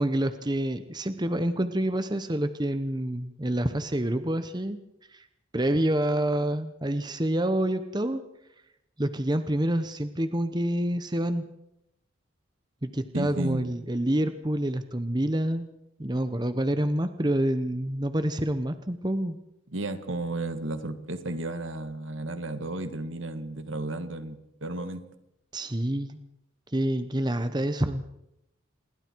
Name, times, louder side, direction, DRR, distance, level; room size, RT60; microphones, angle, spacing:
voice 1, 0.0-4.8 5.1-5.3 5.5-8.2 9.0-11.4 12.8-15.7 16.0-19.4 25.5-26.2 26.7-28.0, right 1 dB, 20° right, 10 dB, 1.0 m, -27 dB
voice 2, 13.1-13.7 19.7-25.0, right 2 dB, 75° right, 9 dB, 2.0 m, -33 dB
28.0 x 22.0 x 4.7 m, 0.83 s
head